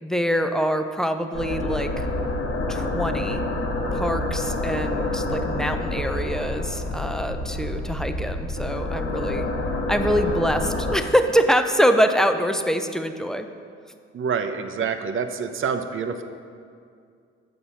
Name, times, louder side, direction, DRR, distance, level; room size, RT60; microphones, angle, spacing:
voice 1, 0.0-2.1 2.7-3.4 3.9-9.5 9.9-13.5, equal, ahead, 7 dB, 0.5 m, -24 dB
sound 1, 1.3-11.0, left 2 dB, 40° left, 1.2 m, -27 dB
voice 2, 14.1-16.2, right 6 dB, 35° right, 8 dB, 0.6 m, -27 dB
8.5 x 6.7 x 4.1 m, 2.3 s
figure-of-eight pair, 45°, 35 cm